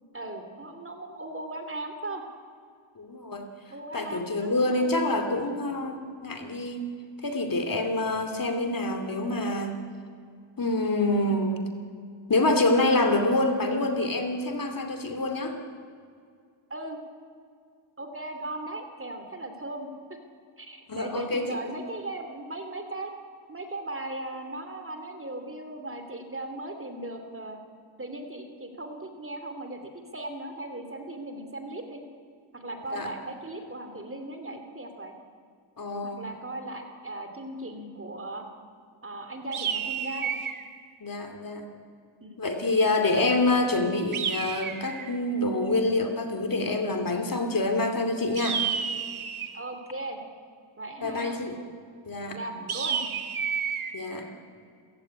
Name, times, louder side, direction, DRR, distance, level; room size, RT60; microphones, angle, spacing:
voice 1, 0.1-2.2 3.7-5.8 16.7-17.0 18.0-20.2 20.6-23.1 23.5-27.6 28.0-32.0 32.5-35.1 36.0-38.5 39.0-40.3 42.2-42.4 49.5-50.2 50.8-51.4 52.3-53.0, right 2 dB, 25° right, 6 dB, 2.8 m, -38 dB
voice 2, 3.0-3.5 3.9-6.9 7.2-9.8 10.6-11.6 12.3-15.6 20.9-21.5 32.9-33.1 35.8-36.3 41.0-41.6 42.4-48.6 51.0-51.6 52.1-52.4 53.9-54.3, left 2 dB, 45° left, 5 dB, 2.7 m, -26 dB
sound 1, 39.5-40.7 44.1-45.2 48.4-49.6 52.7-53.9, right 7 dB, 80° right, 1.8 m, -30 dB
28.5 x 15.5 x 9.7 m, 2.2 s
wide cardioid pair, 115°, 49 cm